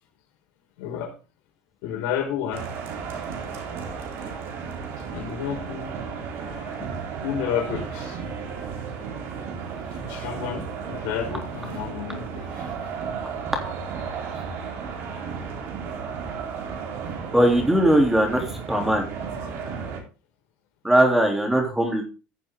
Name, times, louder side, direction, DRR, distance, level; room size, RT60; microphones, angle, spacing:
voice 1, 0.8-1.1 1.8-2.7 5.1-5.9 6.4-6.9 7.2-8.2 9.9-12.7, left 9 dB, 85° left, 2 dB, 4.7 m, -31 dB
sound 1, 2.5-20.0, right 6 dB, 60° right, 4.0 m, -34 dB
voice 2, 17.3-19.1 20.8-22.0, right 1 dB, 5° right, 3 dB, 3.4 m, -20 dB
15.0 x 7.6 x 3.8 m, 0.32 s
cardioid pair, 120°, 5 cm